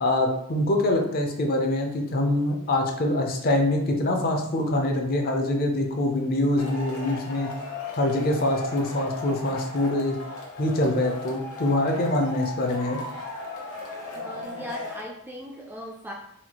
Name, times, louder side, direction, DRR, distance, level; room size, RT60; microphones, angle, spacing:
voice 1, 0.0-7.5 8.0-10.2 10.6-13.0, left 1 dB, 40° left, 2 dB, 0.5 m, -24 dB
Male speech man speaking / Shout / Clapping, 6.6-15.0, left 3 dB, 85° left, 0.8 m, -37 dB
voice 2, 14.1-16.1, left 1 dB, 10° right, -1 dB, 0.3 m, -38 dB
4.2 x 2.3 x 2.9 m, 0.74 s
head